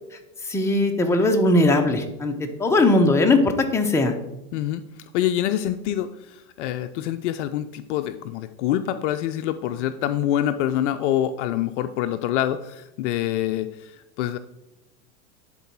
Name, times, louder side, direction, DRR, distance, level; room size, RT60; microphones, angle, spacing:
voice 1, 0.5-2.3 2.6-4.1, left 2 dB, 5° left, 3 dB, 0.7 m, -19 dB
voice 2, 4.5-4.8 5.1-13.9 14.2-14.4, left 11 dB, 50° left, 9 dB, 0.5 m, -26 dB
11.0 x 4.1 x 4.5 m, 0.94 s
hypercardioid pair, 110°, 46 cm